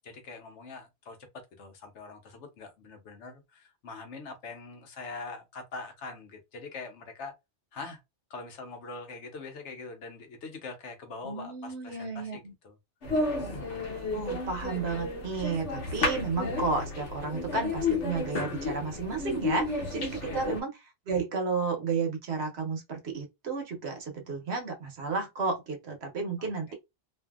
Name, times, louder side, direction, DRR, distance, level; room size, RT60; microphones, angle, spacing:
voice 1, 0.0-7.4 7.7-8.0 8.3-12.8 13.5-13.7 20.3-20.4 26.4-26.5, left 3 dB, 75° left, 1.1 m, -43 dB
voice 2, 11.2-12.5 14.1-20.8 21.1-26.7, right 4 dB, 65° right, 1.1 m, -32 dB
sound 1, 13.0-20.6, left 3 dB, 90° left, 1.3 m, -32 dB
2.6 x 2.6 x 2.3 m
omnidirectional pair, 1.2 m